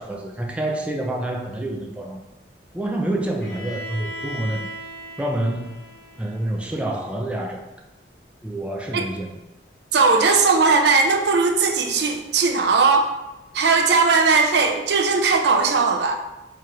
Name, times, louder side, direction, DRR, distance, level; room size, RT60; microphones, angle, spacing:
voice 1, 0.0-2.2 2.7-4.7 5.2-5.7 6.2-7.6 8.4-9.4, right 1 dB, 5° right, 0 dB, 0.4 m, -27 dB
Bowed string instrument, 3.4-7.3, equal, 85° left, 1.2 m, -38 dB
voice 2, 9.9-13.1 13.5-16.2, right 4 dB, 65° right, 4 dB, 0.5 m, -18 dB
4.4 x 2.4 x 4.7 m, 0.99 s
head